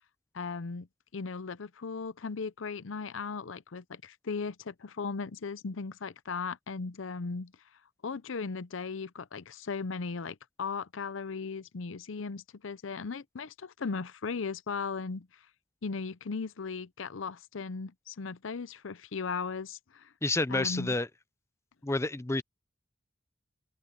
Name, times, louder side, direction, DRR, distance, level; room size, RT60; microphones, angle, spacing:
voice 1, 0.3-0.9 1.1-7.5 8.0-15.3 15.8-20.1 20.5-20.9, left 4 dB, 90° left, 0.7 m, -37 dB
voice 2, 20.2-21.1 21.8-22.4, left 2 dB, 15° left, 0.6 m, -29 dB
open air
head